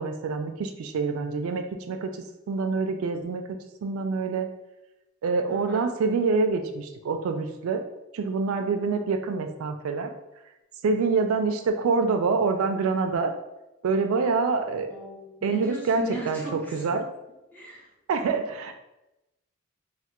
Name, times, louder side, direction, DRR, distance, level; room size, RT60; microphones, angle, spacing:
voice 1, 0.0-2.1 2.5-3.4 3.8-4.5 5.2-7.8 8.1-10.1 10.8-13.3 13.8-14.9 15.4-16.4 16.7-17.1 18.1-18.7, right 4 dB, 80° right, 6 dB, 0.3 m, -26 dB
voice 2, 5.5-5.9 14.9-16.9 17.5-17.8, right 1 dB, 10° left, -5 dB, 0.7 m, -37 dB
3.2 x 2.1 x 2.9 m, 0.94 s
head